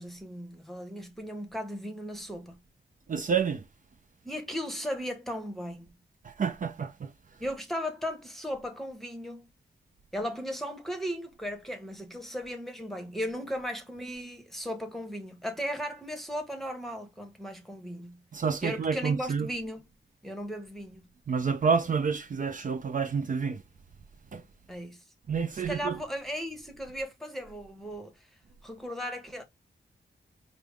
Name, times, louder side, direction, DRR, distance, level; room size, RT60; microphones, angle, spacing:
voice 1, 0.0-2.6 4.2-5.9 7.4-9.5 10.1-18.2 18.6-19.8 20.2-21.0 24.7-25.0 25.5-28.3 28.6-29.4, equal, ahead, 0.9 m, -36 dB
voice 2, 3.1-3.6 6.2-7.1 18.3-19.5 21.3-23.6 24.3-24.4 25.3-26.0, right 6 dB, 45° right, 0.5 m, -29 dB
4.9 x 2.0 x 3.3 m
wide cardioid pair, 135°, 18 cm